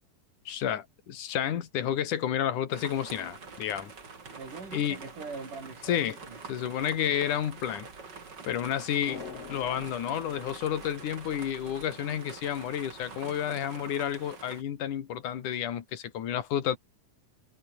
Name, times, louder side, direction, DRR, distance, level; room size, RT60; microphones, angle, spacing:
voice 1, 0.5-3.9 4.7-5.0 5.8-6.2 6.5-7.9 8.5-9.2 9.5-16.8, left 10 dB, 75° left, 3.3 m, -30 dB
sound 1, 2.7-14.6, right 4 dB, 35° right, 3.5 m, -46 dB
voice 2, 4.4-6.4, right 4 dB, 75° right, 8.2 m, -42 dB
sound 2, 9.1-11.5 11.8-11.9, left 6 dB, 50° left, 3.7 m, -45 dB
omnidirectional pair, 3.7 m